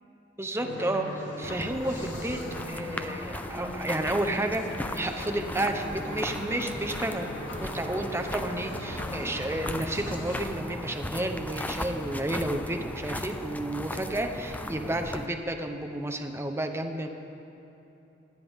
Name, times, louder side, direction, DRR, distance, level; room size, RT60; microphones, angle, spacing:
voice 1, 0.4-4.7 4.9-7.3 7.6-17.1, right 1 dB, 15° right, 5 dB, 0.8 m, -31 dB
sound 1, 0.6-10.4, left 1 dB, 70° left, 1.9 m, -39 dB
sound 2, 1.4-15.3, left 1 dB, 10° left, 0.5 m, -37 dB
26.0 x 10.5 x 3.6 m, 2.9 s
head